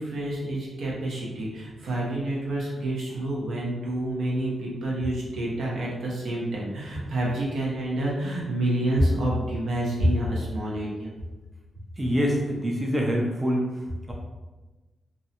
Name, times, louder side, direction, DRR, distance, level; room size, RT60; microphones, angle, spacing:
voice 1, 0.0-11.1, right 1 dB, 75° right, -4 dB, 0.8 m, -28 dB
voice 2, 12.0-13.7, equal, 20° right, -1 dB, 0.4 m, -25 dB
2.6 x 2.1 x 2.8 m, 1.2 s
cardioid pair, 90°, 0 cm